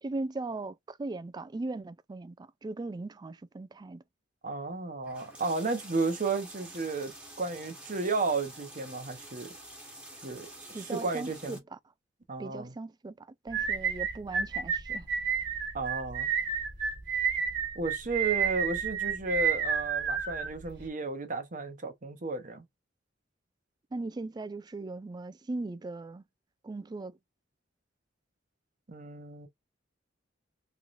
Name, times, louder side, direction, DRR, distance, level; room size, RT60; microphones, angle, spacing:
voice 1, 0.0-4.0 10.7-11.8 12.4-15.1 23.9-26.2 26.6-27.2, right 2 dB, 20° right, 0.3 m, -38 dB
voice 2, 4.4-7.1 7.4-9.5 10.2-11.6 12.3-12.7 15.7-16.3 17.7-22.6 28.9-29.5, right 3 dB, 45° right, 0.9 m, -33 dB
sound 1, 5.0-11.6, right 1 dB, 5° right, 1.2 m, -48 dB
sound 2, 13.5-20.9, right 6 dB, 60° right, 1.4 m, -30 dB
3.6 x 3.2 x 2.5 m
head